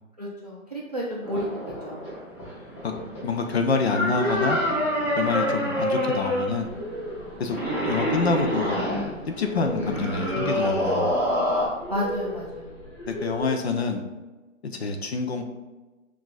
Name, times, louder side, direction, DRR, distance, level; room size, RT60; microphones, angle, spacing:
voice 1, 0.2-1.5 1.8-2.2 11.9-12.8, equal, 35° right, -4 dB, 0.4 m, -31 dB
sound 1, 1.2-11.7, equal, 25° left, 1.4 m, -27 dB
voice 2, 3.2-4.6 5.2-6.7 7.4-7.6 7.8-8.8 9.4-11.1 13.1-14.0 14.8-15.4, left 4 dB, 55° left, 4 dB, 0.5 m, -26 dB
sound 2, 6.6-13.5, equal, 5° right, 1.2 m, -37 dB
5.9 x 2.4 x 2.4 m, 1.2 s
hypercardioid pair, 165°, 40 cm